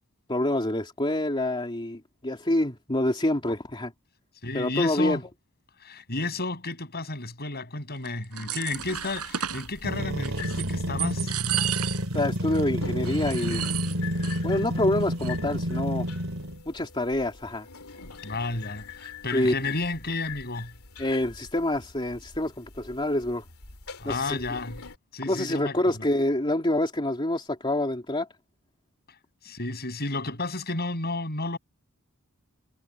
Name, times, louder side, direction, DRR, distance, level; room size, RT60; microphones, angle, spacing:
voice 1, 0.3-3.9 4.5-5.2 12.1-13.6 14.4-16.1 16.7-17.7 19.3-19.5 21.0-23.4 24.0-24.4 25.3-28.3, left 1 dB, 25° left, 3.0 m, -27 dB
voice 2, 4.4-5.2 5.8-11.3 18.2-20.7 24.0-24.8 25.1-26.0 29.4-31.6, left 2 dB, 45° left, 7.8 m, -32 dB
sound 1, 8.1-9.7 10.2-10.7 11.0-12.2 12.5-12.6 13.0-14.4 14.7-14.8 15.0-15.5, right 11 dB, 85° right, 6.7 m, -33 dB
sound 2, 8.7-25.0, left 6 dB, 70° left, 3.2 m, -44 dB
sound 3, 9.8-16.6, equal, 65° right, 3.6 m, -29 dB
head